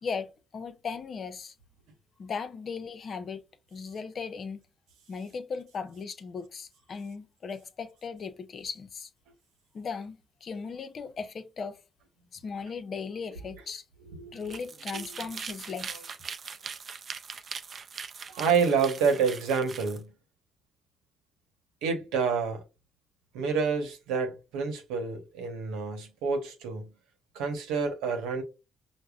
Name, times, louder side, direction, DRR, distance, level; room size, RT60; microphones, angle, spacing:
voice 1, 0.0-1.5 2.2-3.4 3.7-4.6 5.1-9.1 9.7-11.8 12.3-13.8 14.3-16.0, left 5 dB, 50° left, 0.6 m, -37 dB
voice 2, 14.0-14.5 15.9-16.0 18.3-20.1 21.8-22.6 23.3-26.9 27.3-28.4, right 5 dB, 90° right, 1.0 m, -28 dB
sound 1, 14.4-20.0, right 6 dB, 50° right, 0.4 m, -41 dB
5.2 x 2.1 x 2.4 m
supercardioid pair, 75°, 0 cm